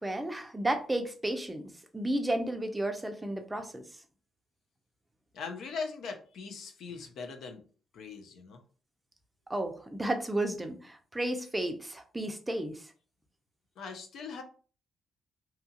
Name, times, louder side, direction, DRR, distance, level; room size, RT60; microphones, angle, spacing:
voice 1, 0.0-1.6 1.9-3.8 9.5-12.9, right 1 dB, 15° right, 6 dB, 0.5 m, -32 dB
voice 2, 5.3-7.6 7.9-8.6 13.8-14.4, left 5 dB, 70° left, 5 dB, 0.6 m, -40 dB
2.8 x 2.3 x 2.8 m, 0.40 s
cardioid pair, 90°, 0 cm